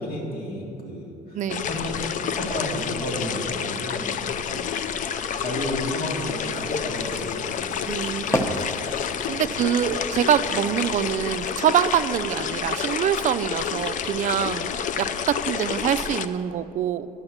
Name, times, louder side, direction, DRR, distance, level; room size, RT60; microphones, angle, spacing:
voice 1, 0.0-4.7 5.4-7.8 9.2-9.6, left 1 dB, 70° left, -2 dB, 2.2 m, -32 dB
voice 2, 1.3-1.7 7.9-8.7 9.3-14.7 15.0-17.1, right 9 dB, 50° right, 13 dB, 0.4 m, -25 dB
sound 1, 1.5-16.3, left 7 dB, 50° left, 0.4 m, -29 dB
sound 2, 6.4-12.0, equal, 15° left, 0.8 m, -34 dB
10.5 x 5.8 x 7.8 m, 2.9 s
cardioid pair, 110°, 17 cm